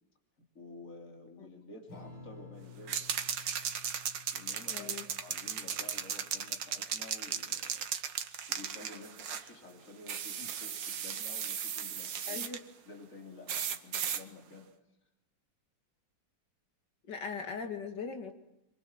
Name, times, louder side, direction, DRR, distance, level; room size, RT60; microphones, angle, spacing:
voice 1, 0.5-3.0 4.3-7.9 8.5-14.7, left 3 dB, 40° left, 1 dB, 3.8 m, -51 dB
Strum, 1.9-8.7, left 5 dB, 80° left, 8.2 m, -55 dB
sound 1, 2.9-9.5 10.1-12.6 13.5-14.2, right 8 dB, 70° right, 1.9 m, -36 dB
voice 2, 4.7-5.0 12.3-12.6 17.1-18.3, left 5 dB, 65° left, 5 dB, 3.0 m, -39 dB
27.0 x 23.0 x 7.4 m, 0.88 s
omnidirectional pair, 2.0 m